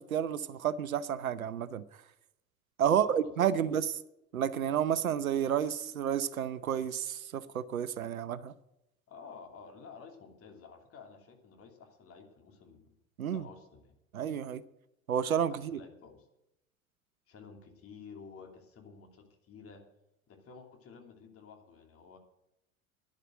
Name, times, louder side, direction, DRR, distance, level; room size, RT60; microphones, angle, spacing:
voice 1, 0.0-1.8 2.8-3.9 4.3-8.5 13.2-13.5 14.1-14.6 15.1-15.8, right 9 dB, 75° right, 0.8 m, -30 dB
voice 2, 2.8-3.7 9.1-12.9 13.3-13.9 15.5-16.3 17.3-19.8 20.3-22.2, left 5 dB, 35° left, 2.9 m, -52 dB
11.0 x 11.0 x 7.6 m
figure-of-eight pair, 80°, 42 cm